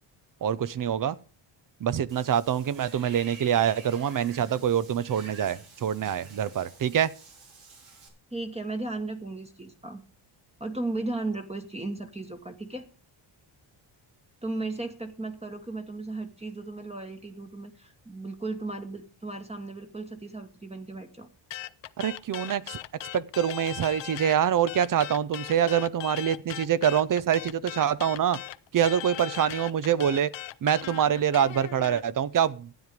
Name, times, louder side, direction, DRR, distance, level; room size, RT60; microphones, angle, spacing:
voice 1, 0.4-1.2 1.8-7.1 22.0-22.8 23.1-28.4 28.7-30.3 30.6-32.7, right 9 dB, 45° right, 0.7 m, -25 dB
Water / Bathtub (filling or washing), 2.1-8.1, right 4 dB, 80° right, 4.1 m, -49 dB
voice 2, 8.3-10.0 10.6-12.9 14.4-21.3, right 2 dB, 15° right, 1.3 m, -35 dB
sound 1, 21.5-24.4 24.7-32.0, left 14 dB, 65° left, 0.7 m, -39 dB
12.5 x 9.2 x 5.1 m
cardioid pair, 145°, 47 cm